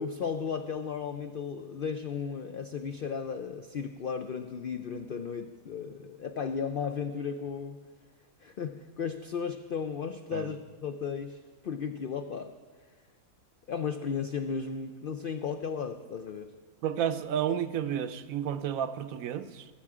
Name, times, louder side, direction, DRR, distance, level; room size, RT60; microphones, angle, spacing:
voice 1, 0.0-7.8 8.4-11.4 11.6-12.5 13.7-16.5, left 6 dB, 70° left, 8 dB, 0.5 m, -35 dB
voice 2, 16.8-19.7, right 9 dB, 70° right, 11 dB, 1.0 m, -31 dB
20.0 x 7.2 x 4.9 m, 1.4 s
omnidirectional pair, 1.5 m